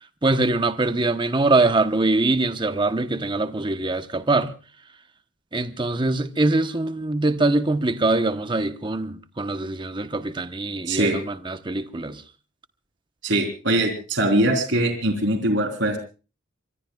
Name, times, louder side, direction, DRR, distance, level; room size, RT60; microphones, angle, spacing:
voice 1, 0.2-4.5 5.5-12.2, right 2 dB, 25° right, 1.0 m, -23 dB
voice 2, 10.9-11.2 13.2-16.0, right 1 dB, 65° right, 3.9 m, -22 dB
25.0 x 24.0 x 2.4 m
head